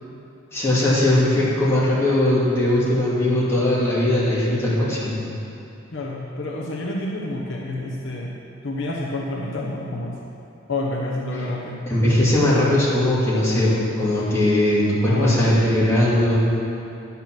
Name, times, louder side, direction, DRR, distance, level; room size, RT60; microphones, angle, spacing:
voice 1, 0.5-5.1 11.9-16.4, left 1 dB, 15° left, -8 dB, 2.4 m, -19 dB
voice 2, 5.9-8.3 8.6-10.2 10.7-11.9 15.0-15.5, left 2 dB, 60° left, -2 dB, 1.0 m, -28 dB
10.0 x 7.0 x 6.1 m, 2.8 s
head